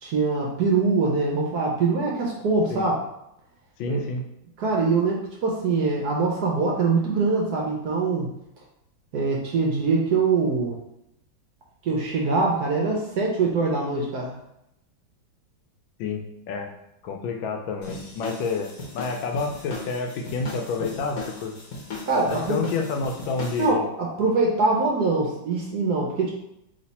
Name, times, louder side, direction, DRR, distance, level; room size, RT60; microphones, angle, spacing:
voice 1, 0.0-2.9 3.9-4.0 4.6-8.3 9.1-10.7 11.8-14.3 22.0-22.7 23.6-26.3, right 4 dB, 65° right, -2 dB, 1.0 m, -23 dB
voice 2, 3.8-4.2 16.0-16.7 17.0-21.6 22.3-23.8, left 4 dB, 80° left, 3 dB, 1.3 m, -29 dB
sound 1, 17.8-23.7, left 3 dB, 55° left, 1.1 m, -38 dB
3.2 x 3.1 x 4.1 m, 0.81 s
omnidirectional pair, 2.2 m